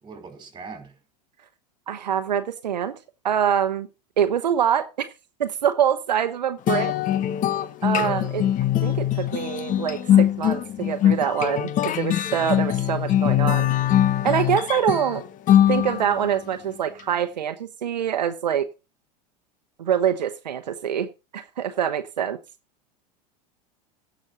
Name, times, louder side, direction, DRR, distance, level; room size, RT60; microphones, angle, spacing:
voice 1, 0.0-0.9, right 4 dB, 20° right, 4.5 m, -40 dB
voice 2, 1.9-3.0 3.2-3.9 4.2-5.1 5.4-6.9 7.8-8.5 8.8-13.7 14.2-15.2 15.7-18.7 19.8-22.4, right 9 dB, 90° right, 0.9 m, -25 dB
sound 1, 6.7-16.3, left 11 dB, 40° left, 1.0 m, -22 dB
16.0 x 6.3 x 3.9 m
hypercardioid pair, 90°, 21 cm